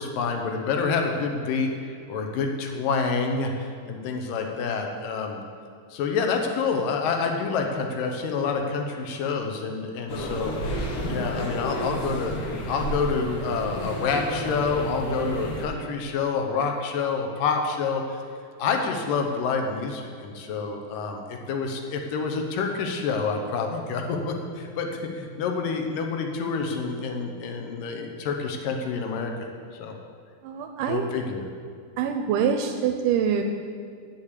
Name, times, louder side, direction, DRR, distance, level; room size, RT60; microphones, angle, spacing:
voice 1, 0.0-1.7 2.1-5.4 5.9-10.5 11.1-12.3 12.7-18.2 18.6-29.5 29.7-29.9 30.9-31.4, left 5 dB, 75° left, 3 dB, 2.4 m, -28 dB
sound 1, 10.1-15.6, equal, 60° left, 1.9 m, -31 dB
voice 2, 30.4-31.1 32.0-33.4, right 8 dB, 80° right, 5 dB, 2.0 m, -25 dB
8.8 x 6.6 x 8.1 m, 2.3 s
omnidirectional pair, 4.1 m